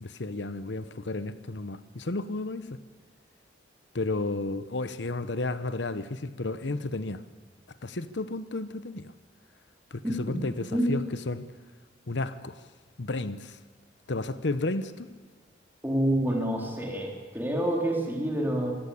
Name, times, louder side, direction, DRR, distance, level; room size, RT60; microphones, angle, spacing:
voice 1, 0.0-2.8 3.9-7.2 7.8-9.1 9.9-11.5 12.1-12.7 13.0-13.6 14.1-15.1, left 2 dB, 80° left, 13 dB, 0.9 m, -32 dB
voice 2, 15.8-18.7, right 1 dB, 10° right, -1 dB, 3.9 m, -27 dB
24.5 x 15.5 x 8.6 m, 1.5 s
head